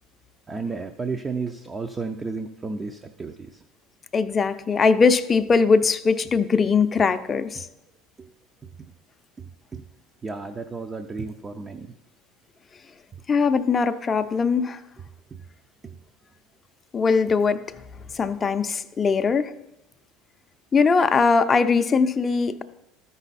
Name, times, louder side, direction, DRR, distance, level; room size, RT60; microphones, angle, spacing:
voice 1, 0.5-3.3 8.2-8.3 9.7-9.8 10.2-11.9, right 4 dB, 25° right, 5 dB, 0.5 m, -32 dB
voice 2, 4.1-7.7 13.3-14.8 16.9-17.6 18.1-19.6 20.7-22.6, left 5 dB, 25° left, 9 dB, 0.5 m, -21 dB
13.0 x 5.5 x 4.1 m, 0.92 s
supercardioid pair, 100°, 0 cm